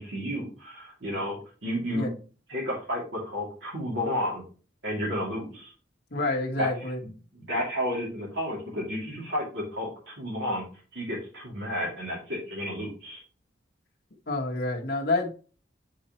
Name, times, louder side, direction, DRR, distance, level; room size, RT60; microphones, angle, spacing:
voice 1, 0.0-2.1 2.5-4.5 4.8-5.7 6.6-6.7 7.3-10.6 10.9-13.2, equal, 75° right, -5 dB, 2.4 m, -31 dB
voice 2, 6.1-7.0 14.3-15.3, left 2 dB, 60° left, -2 dB, 1.1 m, -28 dB
8.1 x 4.3 x 2.9 m, 0.37 s
head